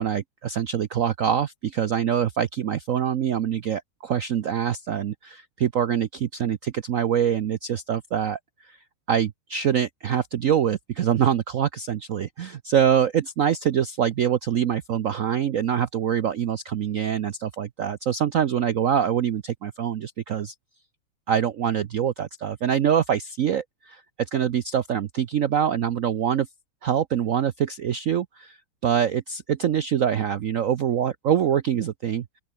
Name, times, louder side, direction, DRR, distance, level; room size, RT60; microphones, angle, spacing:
voice 1, 0.0-8.4 8.6-8.8 9.1-20.5 21.3-26.5 26.8-28.6 28.8-32.2, right 9 dB, 90° right, 0.7 m, -24 dB
open air
omnidirectional pair, 2.4 m